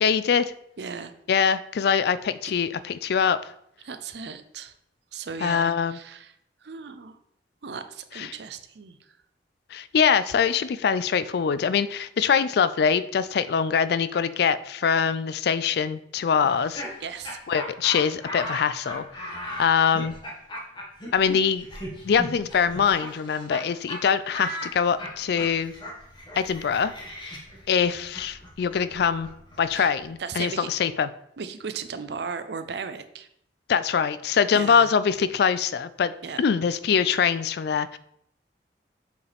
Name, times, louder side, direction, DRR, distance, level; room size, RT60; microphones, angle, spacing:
voice 1, 0.0-0.5 1.3-3.4 5.4-6.0 8.1-8.3 9.7-16.8 17.5-19.3 19.6-20.1 21.1-21.7 22.0-25.7 26.4-26.9 27.7-29.3 29.6-31.1 33.7-36.1 36.4-38.0, left 6 dB, 65° left, 15 dB, 0.4 m, -23 dB
voice 2, 0.8-1.1 3.8-4.7 5.1-6.3 6.6-7.2 7.6-9.0 17.0-17.4 29.7-29.9 30.2-30.7 31.4-33.3 34.5-34.9 36.2-36.4, right 5 dB, 65° right, 10 dB, 0.6 m, -36 dB
Laughter, 16.4-23.6 23.9-24.0 24.3-30.0, equal, 25° left, 1.6 m, -37 dB
7.9 x 4.8 x 3.4 m, 0.73 s
head